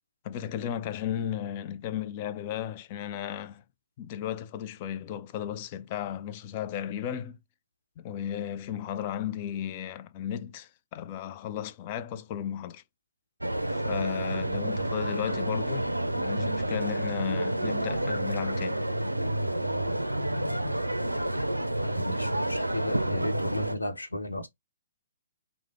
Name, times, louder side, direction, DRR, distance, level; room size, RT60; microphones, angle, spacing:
voice 1, 0.2-3.6 4.0-7.4 8.0-12.8 13.7-18.8, left 10 dB, 35° left, 0.4 m, -35 dB
sound 1, 13.4-23.8, right 1 dB, 90° right, 0.4 m, -29 dB
voice 2, 21.8-24.5, left 1 dB, 80° left, 0.8 m, -34 dB
3.2 x 2.0 x 3.5 m
figure-of-eight pair, 125°, 0 cm